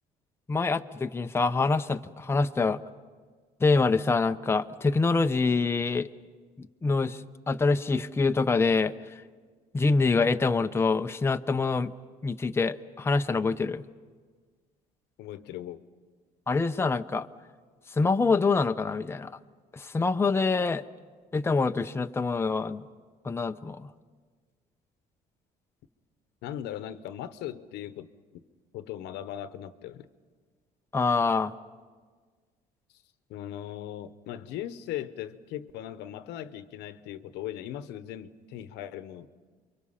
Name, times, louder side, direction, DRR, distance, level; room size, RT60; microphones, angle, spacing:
voice 1, 0.5-2.8 3.6-6.1 6.6-7.2 7.5-8.9 9.7-11.9 12.2-13.8 16.5-17.3 18.0-19.3 19.7-20.8 21.3-22.9 23.2-23.9 30.9-31.5, left 4 dB, 15° left, 0.6 m, -25 dB
voice 2, 15.2-15.8 26.4-28.1 28.3-28.4 28.7-30.1 33.3-39.3, left 11 dB, 85° left, 1.0 m, -38 dB
29.0 x 24.0 x 5.7 m
cardioid pair, 110°, 17 cm